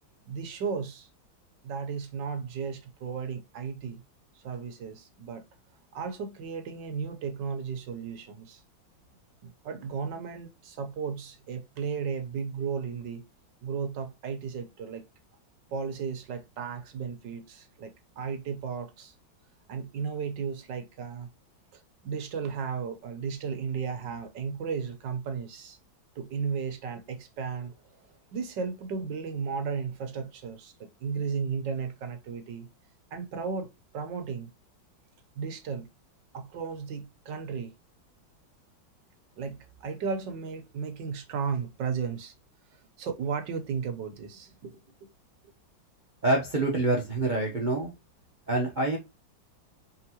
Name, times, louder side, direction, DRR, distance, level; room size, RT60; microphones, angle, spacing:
voice 1, 0.3-1.1 1.6-4.0 4.3-5.4 5.9-8.6 9.4-13.3 13.6-15.0 15.7-19.1 19.7-21.3 21.7-25.8 26.1-32.7 33.1-34.5 35.3-35.9 36.3-37.7 39.4-42.3 42.7-45.1, right 6 dB, 65° right, 1.5 m, -35 dB
voice 2, 46.2-47.9 48.5-49.0, right 2 dB, 30° right, 1.0 m, -26 dB
4.6 x 3.8 x 2.9 m
omnidirectional pair, 2.1 m